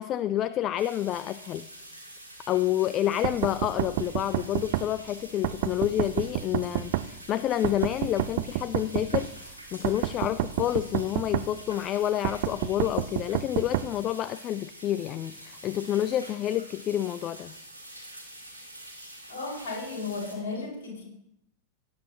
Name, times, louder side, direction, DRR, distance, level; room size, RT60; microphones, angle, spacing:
voice 1, 0.0-1.7 2.5-17.6, left 12 dB, 35° left, 15 dB, 0.3 m, -29 dB
sound 1, 0.8-20.4, right 1 dB, 90° left, 2.1 m, -46 dB
sound 2, 3.2-4.9 5.4-7.1 7.6-9.3 9.8-11.5 12.2-13.9, right 15 dB, 50° right, 0.4 m, -28 dB
voice 2, 19.3-21.0, left 3 dB, 55° left, -3 dB, 5.0 m, -34 dB
18.5 x 9.0 x 2.9 m, 0.78 s
figure-of-eight pair, 90°, 0 cm